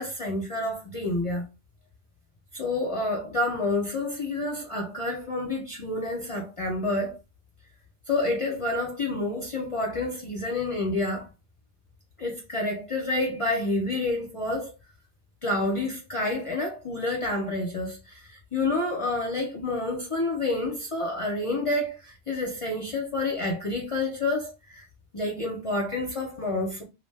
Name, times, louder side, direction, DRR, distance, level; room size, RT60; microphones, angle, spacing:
voice 1, 0.0-1.4 2.5-7.2 8.1-11.3 12.2-14.7 15.4-24.9 25.1-26.8, left 2 dB, 40° left, 0.5 m, -29 dB
2.3 x 2.1 x 3.2 m
omnidirectional pair, 1.2 m